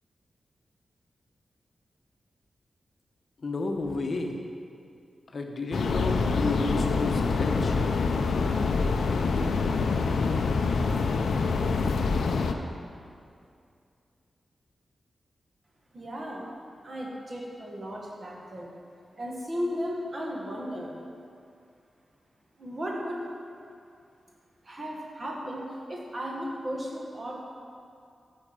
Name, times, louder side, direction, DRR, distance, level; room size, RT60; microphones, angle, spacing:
voice 1, 3.4-4.4 5.3-7.7, left 2 dB, 45° left, 3 dB, 0.9 m, -32 dB
sound 1, 5.7-12.5, left 4 dB, 85° left, 0.5 m, -26 dB
voice 2, 15.9-16.5 16.8-18.7 19.2-20.9 22.6-23.2 24.6-27.3, equal, 35° right, -2 dB, 1.6 m, -35 dB
13.0 x 4.7 x 4.9 m, 2.4 s
wide cardioid pair, 120°, 0 cm